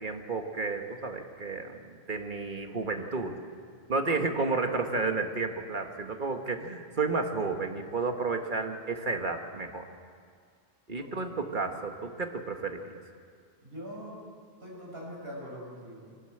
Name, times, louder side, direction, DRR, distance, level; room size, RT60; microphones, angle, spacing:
voice 1, 0.0-3.4 3.9-9.9 10.9-13.0, right 3 dB, 50° right, 4 dB, 1.7 m, -32 dB
voice 2, 11.0-11.5 13.6-14.3 14.6-16.1, equal, 65° right, -3 dB, 6.8 m, -43 dB
23.5 x 18.5 x 7.9 m, 2.2 s
omnidirectional pair, 1.1 m